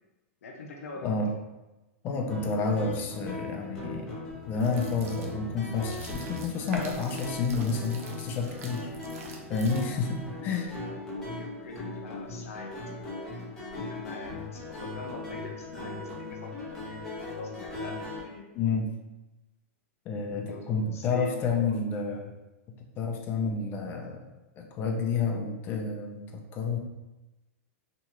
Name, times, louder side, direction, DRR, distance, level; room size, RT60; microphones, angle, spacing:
voice 1, 0.4-1.2 9.9-10.0 10.3-10.5 10.8-12.7 13.6-17.0 17.3-18.5 20.5-21.3 21.7-21.8, left 1 dB, 85° left, 2 dB, 0.6 m, -43 dB
voice 2, 1.0-1.3 2.0-8.9 9.5-10.7 18.5-18.9 20.1-22.3 23.0-24.3 24.6-26.8, left 4 dB, 25° left, 2 dB, 0.4 m, -30 dB
sound 1, 2.3-18.2, left 2 dB, 5° left, 0.8 m, -39 dB
sound 2, 4.5-10.2, right 3 dB, 85° right, 0.6 m, -45 dB
2.9 x 2.3 x 2.9 m, 1.0 s
hypercardioid pair, 145°, 8 cm